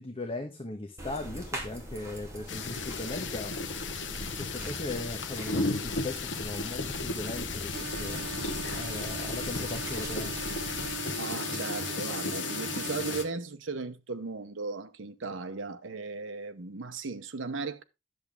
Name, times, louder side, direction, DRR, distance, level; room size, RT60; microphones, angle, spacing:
voice 1, 0.0-3.5 4.4-8.2 8.7-10.3, left 2 dB, 30° left, 1.2 m, -38 dB
sound 1, 1.0-11.0, right 1 dB, 15° right, 2.7 m, -42 dB
sound 2, 2.5-13.2, left 4 dB, 70° left, 1.1 m, -34 dB
sound 3, 7.7-13.3, right 6 dB, 60° right, 2.3 m, -40 dB
voice 2, 11.2-17.8, right 4 dB, 85° right, 0.9 m, -37 dB
10.5 x 7.2 x 3.5 m
head